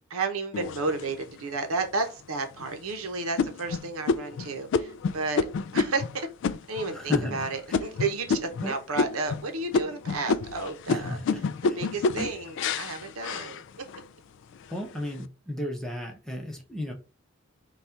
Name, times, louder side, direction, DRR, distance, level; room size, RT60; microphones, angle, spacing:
voice 1, 0.0-5.4 5.7-6.3 6.7-11.2 11.6-14.0, right 3 dB, 85° right, 0.8 m, -32 dB
sound 1, 0.5-1.4 2.0-2.1 2.6-2.9 3.4-8.7 9.0-9.5 9.7-14.1 14.5-15.1, left 4 dB, 60° left, 0.3 m, -29 dB
voice 2, 6.9-7.4 8.6-8.7 10.9-11.4 11.7-11.8 12.2-12.3 14.7-16.9, equal, 5° left, 0.8 m, -34 dB
4.1 x 2.3 x 4.4 m
head